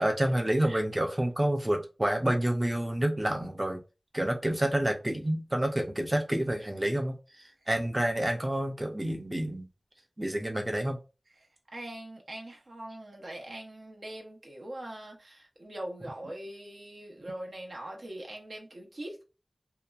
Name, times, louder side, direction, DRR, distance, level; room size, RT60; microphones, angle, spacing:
voice 1, 0.0-3.8 4.1-9.7 10.2-11.0, right 1 dB, 25° right, 0.5 m, -28 dB
voice 2, 11.7-19.2, right 1 dB, 75° right, 0.7 m, -42 dB
2.8 x 2.2 x 2.3 m
wide cardioid pair, 40°, 0 cm